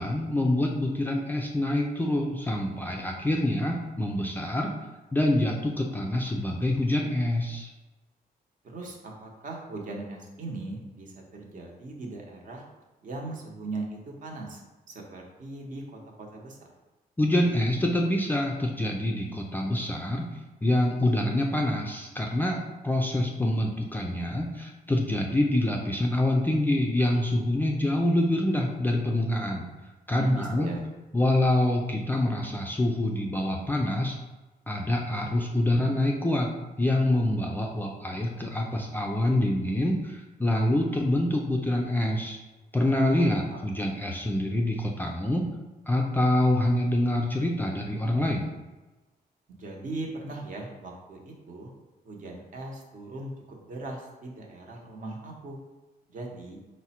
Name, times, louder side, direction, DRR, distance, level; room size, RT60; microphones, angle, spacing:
voice 1, 0.0-4.7 5.1-7.7 17.2-20.2 20.6-22.6 22.8-29.7 30.1-30.7 31.1-34.2 34.7-36.5 36.8-42.4 42.7-45.5 45.9-48.5, left 1 dB, 10° left, 0 dB, 0.3 m, -26 dB
voice 2, 8.6-12.6 13.0-14.6 14.9-16.7 30.2-30.8 43.0-43.2 43.5-43.6 49.5-51.7 52.0-55.6 56.1-56.6, right 2 dB, 55° right, 0 dB, 0.8 m, -38 dB
4.7 x 2.1 x 4.2 m, 1.1 s
wide cardioid pair, 160°, 16 cm